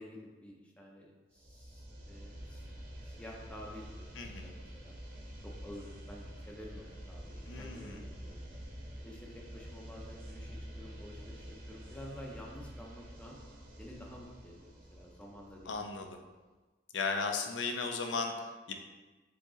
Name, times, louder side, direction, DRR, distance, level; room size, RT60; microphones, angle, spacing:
voice 1, 0.0-2.7 3.0-4.9 5.4-8.6 9.0-13.4 13.8-15.8, left 1 dB, 5° left, -2 dB, 0.5 m, -50 dB
sound 1, 1.3-16.2, equal, 50° right, 0.8 m, -48 dB
voice 2, 4.2-4.5 7.5-8.0 15.7-16.2 16.9-18.7, left 4 dB, 80° left, 5 dB, 0.5 m, -36 dB
4.8 x 2.9 x 3.8 m, 1.2 s
head